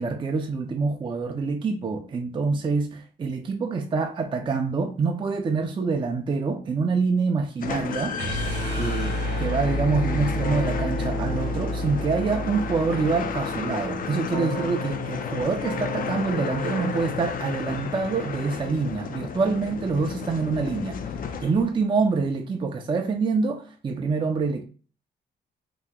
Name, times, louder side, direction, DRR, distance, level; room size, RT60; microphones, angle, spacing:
voice 1, 0.0-8.2 8.8-21.0 21.4-24.6, right 4 dB, 25° right, 0.4 m, -26 dB
sound 1, 7.6-21.9, left 7 dB, 55° left, 0.4 m, -33 dB
sound 2, 8.1-14.2, equal, 85° right, 0.7 m, -30 dB
Keyboard (musical), 10.4-12.7 14.3-18.6, left 1 dB, 90° left, 0.7 m, -36 dB
2.8 x 2.1 x 3.6 m
cardioid pair, 95°, 18 cm